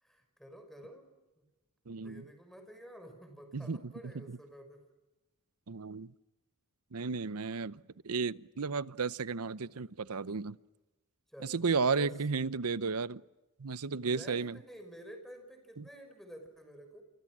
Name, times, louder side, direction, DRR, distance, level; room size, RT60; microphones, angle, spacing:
voice 1, 0.0-1.1 1.4-1.5 1.9-4.8 11.3-11.6 11.9-12.1 14.0-17.0, equal, ahead, 5.5 m, -50 dB
voice 2, 1.9-2.3 3.5-4.4 5.7-6.1 6.9-10.6 11.4-13.2 13.6-14.6 15.8-15.9, right 4 dB, 80° right, 0.8 m, -34 dB
29.0 x 28.5 x 6.2 m
head